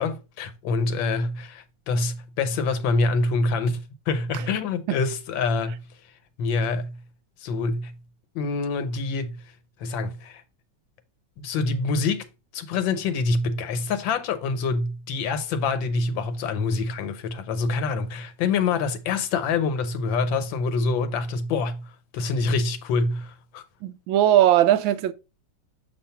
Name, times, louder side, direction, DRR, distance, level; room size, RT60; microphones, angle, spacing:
voice 1, 0.0-5.8 6.4-7.0 7.4-7.9 8.3-9.4 9.8-10.4 11.4-12.3 12.5-23.6, left 4 dB, 75° left, 1.6 m, -26 dB
voice 2, 23.8-25.1, right 12 dB, 85° right, 1.3 m, -19 dB
7.4 x 2.5 x 5.5 m
omnidirectional pair, 2.1 m